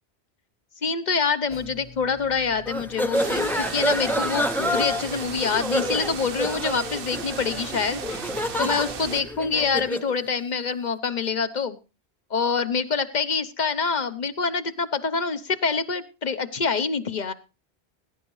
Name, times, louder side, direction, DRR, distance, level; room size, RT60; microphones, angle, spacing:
voice 1, 0.8-8.3 8.6-11.8 12.3-17.3, left 5 dB, 45° left, 12 dB, 1.0 m, -26 dB
sound 1, 1.5-9.9, left 2 dB, 60° left, 2.3 m, -47 dB
sound 2, 2.7-10.1, equal, ahead, 0.6 m, -28 dB
sound 3, 3.1-9.2, right 7 dB, 60° right, 1.0 m, -36 dB
19.5 x 10.5 x 3.1 m, 0.32 s
omnidirectional pair, 1.1 m